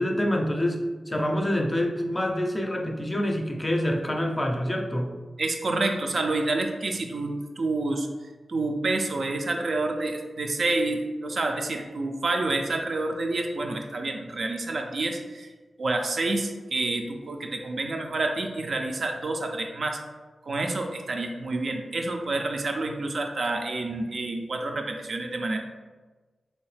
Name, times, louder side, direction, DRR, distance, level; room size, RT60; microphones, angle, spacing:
voice 1, 0.0-5.1, left 1 dB, 20° left, 3 dB, 0.4 m, -26 dB
voice 2, 5.4-8.1 8.5-15.5 15.8-20.0 20.5-25.6, right 2 dB, 65° right, 3 dB, 0.4 m, -28 dB
3.1 x 2.8 x 3.2 m, 1.3 s
cardioid pair, 70°, 0 cm